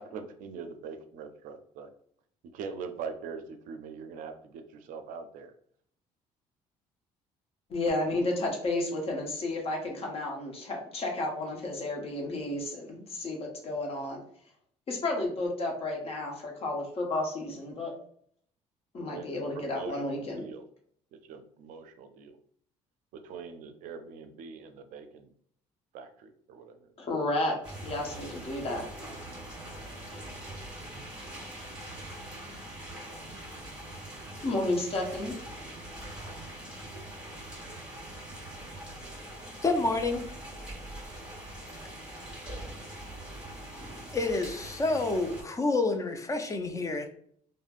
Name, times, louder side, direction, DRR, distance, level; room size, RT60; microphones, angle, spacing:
voice 1, 0.0-1.9 2.5-5.5 19.0-19.3 19.5-20.6 21.1-22.4 23.1-25.3 25.9-26.9, right 5 dB, 75° right, 8 dB, 0.4 m, -42 dB
voice 2, 7.7-14.2 14.9-17.9 18.9-20.4 27.0-27.6 27.8-28.9 34.4-35.4, left 2 dB, 45° left, 1 dB, 0.9 m, -32 dB
sound 1, 27.6-45.4, right 1 dB, 10° right, 1.3 m, -43 dB
voice 3, 39.6-40.3 43.9-47.1, left 3 dB, 25° left, 6 dB, 0.4 m, -29 dB
3.2 x 2.1 x 2.4 m, 0.62 s
cardioid pair, 90°, 14 cm